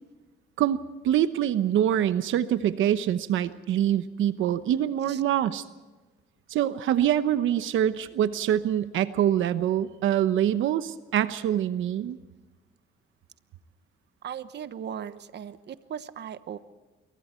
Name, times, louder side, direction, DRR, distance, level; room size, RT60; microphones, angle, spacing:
voice 1, 1.0-5.6 6.5-12.2, right 11 dB, 80° right, 12 dB, 1.0 m, -25 dB
voice 2, 14.2-16.6, right 8 dB, 60° right, 13 dB, 1.1 m, -38 dB
26.5 x 23.5 x 4.5 m, 1.2 s
cardioid pair, 90°, 20 cm